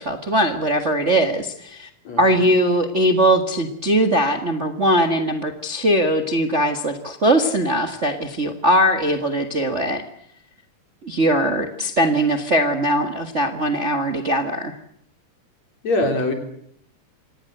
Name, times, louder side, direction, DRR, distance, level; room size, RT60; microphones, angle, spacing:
voice 1, 0.0-1.9 2.2-10.0 11.0-14.7, right 1 dB, 30° right, 7 dB, 1.5 m, -20 dB
voice 2, 2.1-2.4 15.8-16.3, left 2 dB, 60° left, 5 dB, 5.1 m, -22 dB
26.0 x 19.5 x 7.9 m, 0.68 s
omnidirectional pair, 3.6 m